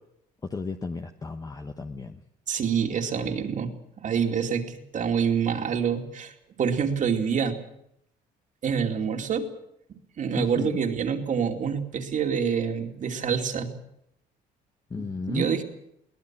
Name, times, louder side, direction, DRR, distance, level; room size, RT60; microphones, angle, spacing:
voice 1, 0.5-2.2 10.4-10.7 14.9-15.5, left 4 dB, 20° left, 6 dB, 1.1 m, -33 dB
voice 2, 2.5-6.3 6.6-7.6 8.6-9.5 10.2-13.7 15.0-15.6, right 7 dB, 50° right, 4 dB, 2.6 m, -27 dB
22.5 x 18.0 x 7.5 m, 0.77 s
cardioid pair, 110°, 17 cm